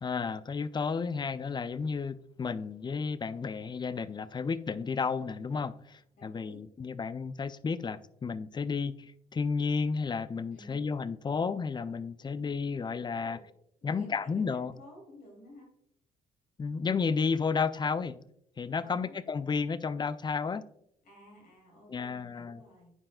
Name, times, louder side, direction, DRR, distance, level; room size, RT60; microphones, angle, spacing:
voice 1, 0.0-13.4 13.8-14.7 16.6-18.2 18.6-20.6 21.9-22.6, left 5 dB, 25° left, 0.5 m, -32 dB
voice 2, 6.1-6.6 10.5-10.9 13.2-13.5 13.8-15.7 18.8-19.1 21.0-22.9, equal, 50° left, 2.8 m, -53 dB
9.6 x 5.4 x 2.2 m
hypercardioid pair, 45°, 18 cm